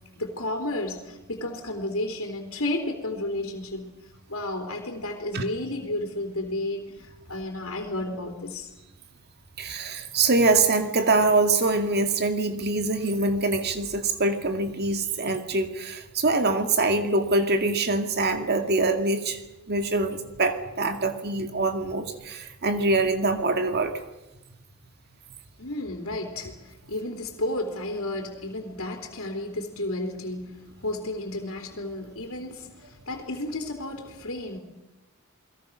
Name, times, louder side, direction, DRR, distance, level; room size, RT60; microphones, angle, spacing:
voice 1, 0.2-3.9 4.3-8.7 25.6-34.6, left 1 dB, 70° left, 2 dB, 3.6 m, -32 dB
voice 2, 9.6-19.4 19.7-23.9, right 2 dB, 50° right, 7 dB, 2.3 m, -24 dB
29.0 x 21.0 x 6.4 m, 1.0 s
head